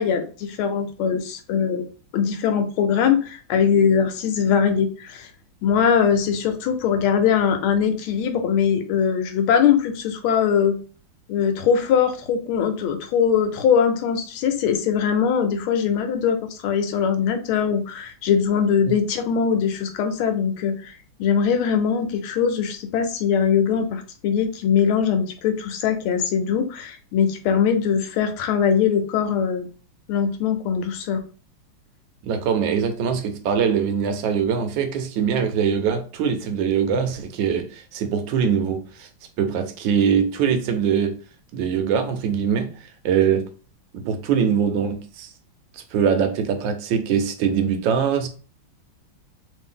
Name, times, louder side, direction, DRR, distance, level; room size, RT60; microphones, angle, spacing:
voice 1, 0.0-1.8 2.1-5.3 5.6-10.8 11.3-29.7 30.1-31.2, left 7 dB, 90° left, 1.5 m, -21 dB
voice 2, 32.2-39.1 39.4-41.2 41.5-43.5 43.9-45.3 45.7-48.3, right 7 dB, 75° right, 1.3 m, -22 dB
3.4 x 2.7 x 3.6 m
omnidirectional pair, 2.2 m